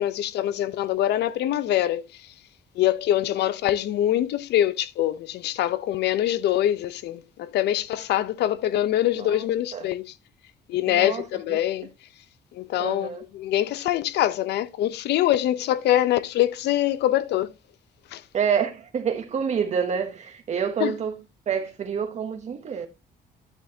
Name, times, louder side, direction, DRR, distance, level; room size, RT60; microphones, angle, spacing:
voice 1, 0.0-2.0 2.8-10.1 10.7-11.9 12.5-17.5 18.1-18.2 20.8-20.9, left 12 dB, 90° left, 0.8 m, -24 dB
voice 2, 10.8-11.2 11.5-11.6 12.8-13.2 18.3-21.1 21.5-22.9, right 7 dB, 40° right, 1.1 m, -27 dB
10.5 x 8.1 x 2.8 m
cardioid pair, 155°, 17 cm